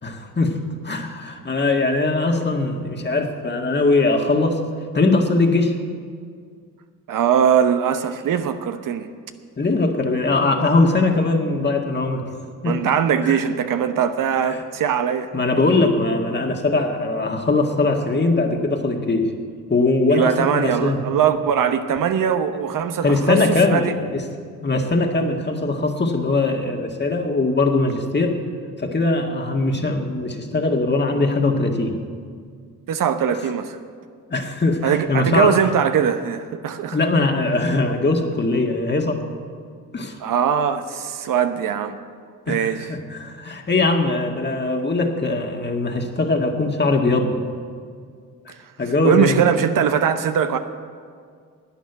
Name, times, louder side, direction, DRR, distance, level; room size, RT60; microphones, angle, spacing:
voice 1, 0.0-0.6 0.8-4.6 4.9-5.7 9.6-12.2 12.6-12.8 13.2-13.4 14.4-14.6 15.3-19.2 19.7-21.0 23.0-24.2 24.6-28.4 28.8-32.0 34.3-35.6 36.9-39.2 39.9-40.2 42.5-47.4 48.8-49.4, left 3 dB, 30° left, 3 dB, 1.8 m, -21 dB
voice 2, 7.1-9.1 12.6-15.3 20.1-23.4 23.7-23.9 32.9-33.8 34.8-37.0 40.2-42.0 42.5-42.9 49.0-50.6, right 8 dB, 60° right, 8 dB, 0.9 m, -21 dB
11.5 x 9.2 x 8.1 m, 2.1 s
supercardioid pair, 65°, 37 cm